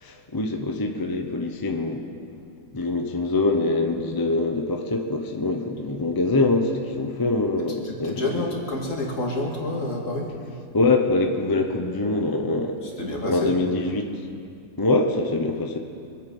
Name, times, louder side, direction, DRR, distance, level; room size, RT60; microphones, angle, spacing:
voice 1, 0.0-2.0 2.7-8.4 10.7-12.8 13.3-14.0 14.8-15.8, left 2 dB, 20° left, 3 dB, 0.5 m, -24 dB
voice 2, 7.8-10.3 12.8-13.5, left 2 dB, 45° left, -1 dB, 2.6 m, -28 dB
24.5 x 9.0 x 5.4 m, 2.4 s
omnidirectional pair, 1.9 m